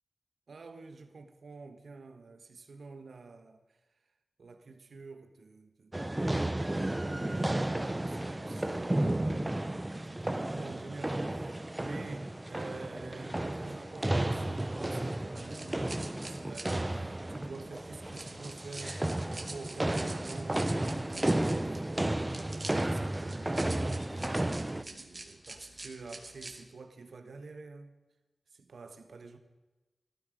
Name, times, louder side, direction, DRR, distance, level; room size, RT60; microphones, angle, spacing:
voice 1, 0.5-3.8 4.4-28.0 28.5-29.4, right 4 dB, 85° right, 1.4 m, -48 dB
sound 1, 5.9-24.8, right 1 dB, 20° right, 0.8 m, -33 dB
sound 2, 15.4-26.6, right 2 dB, 40° right, 2.0 m, -47 dB
18.5 x 14.0 x 5.3 m
wide cardioid pair, 75°, 0 cm